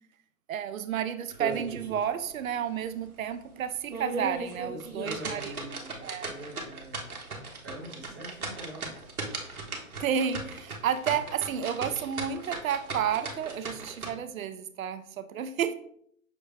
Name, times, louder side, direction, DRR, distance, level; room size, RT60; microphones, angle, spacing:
voice 1, 0.5-5.5 6.0-6.3 10.0-15.7, right 8 dB, 75° right, 11 dB, 0.5 m, -31 dB
sound 1, 1.3-2.0 2.4-2.5 3.0-3.1 3.7-14.1, right 3 dB, 90° right, 1.1 m, -37 dB
voice 2, 4.7-7.1 7.6-9.1, right 1 dB, 15° right, -5 dB, 0.4 m, -44 dB
6.1 x 2.1 x 3.3 m, 0.66 s
hypercardioid pair, 140°, 42 cm